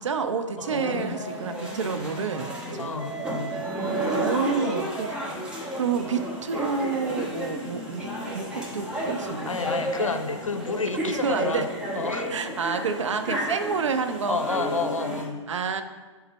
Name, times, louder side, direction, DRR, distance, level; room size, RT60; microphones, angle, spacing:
voice 1, 0.0-2.9 4.2-5.2 5.7-9.8 11.1-11.7 12.3-14.4 15.5-15.8, right 5 dB, 70° right, 9 dB, 0.6 m, -29 dB
voice 2, 0.6-0.9 2.8-3.6 9.5-12.3 14.3-15.4, left 4 dB, 85° left, 9 dB, 0.6 m, -30 dB
sound 1, 0.6-15.2, right 1 dB, 5° right, 1.1 m, -32 dB
6.8 x 3.9 x 4.2 m, 1.4 s
figure-of-eight pair, 120°, 16 cm